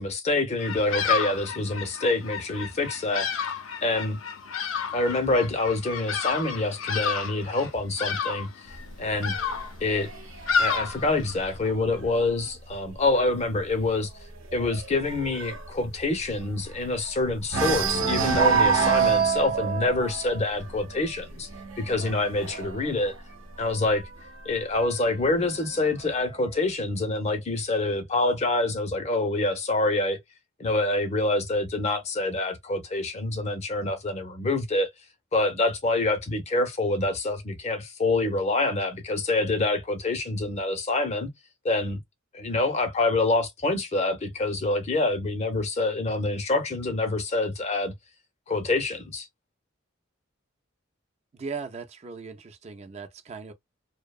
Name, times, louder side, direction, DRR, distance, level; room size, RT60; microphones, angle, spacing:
voice 1, 0.0-3.3 3.8-4.2 4.9-9.4 9.8-10.1 10.6-14.1 14.5-21.5 21.8-23.1 23.6-24.0 24.5-30.2 30.6-34.9 35.3-41.3 41.6-42.0 42.3-47.9 48.5-49.3, left 2 dB, 35° left, 0.6 m, -26 dB
Bird vocalization bird call bird song, 0.6-11.6, left 6 dB, 75° left, 0.6 m, -31 dB
sound 1, 8.7-12.3 12.7-13.1 13.3-13.4 13.8-17.1 17.5-24.0 24.9-25.9, right 6 dB, 90° right, 0.8 m, -28 dB
voice 2, 51.3-53.5, right 5 dB, 30° right, 0.4 m, -38 dB
2.7 x 2.1 x 2.3 m
head